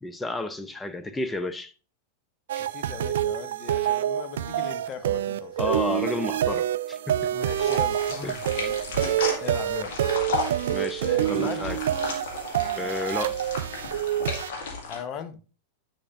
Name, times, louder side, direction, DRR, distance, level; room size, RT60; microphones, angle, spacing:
voice 1, 0.0-1.7 2.5-2.6 5.6-7.3 8.2-8.3 9.1-9.2 10.7-11.8 12.7-13.4, left 2 dB, 10° left, 0.6 m, -32 dB
sound 1, 2.5-14.5, right 11 dB, 60° right, 0.3 m, -27 dB
voice 2, 2.6-5.7 7.3-10.0 11.0-11.7 14.8-15.4, left 7 dB, 35° left, 0.9 m, -39 dB
sound 2, 7.5-15.0, left 3 dB, 55° left, 1.9 m, -34 dB
9.8 x 5.9 x 2.6 m
figure-of-eight pair, 90°, 0 cm